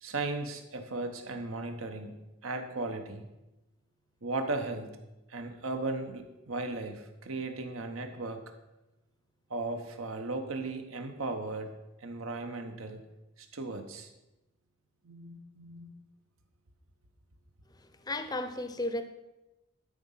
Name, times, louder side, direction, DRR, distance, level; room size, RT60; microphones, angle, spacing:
voice 1, 0.0-2.2 2.4-3.2 4.2-4.9 5.3-8.4 9.5-11.7 12.0-13.0 13.4-14.1 15.0-15.9, right 2 dB, 75° right, 6 dB, 1.1 m, -36 dB
voice 2, 17.8-19.0, left 1 dB, 20° left, 9 dB, 0.6 m, -34 dB
12.0 x 5.1 x 5.6 m, 0.99 s
head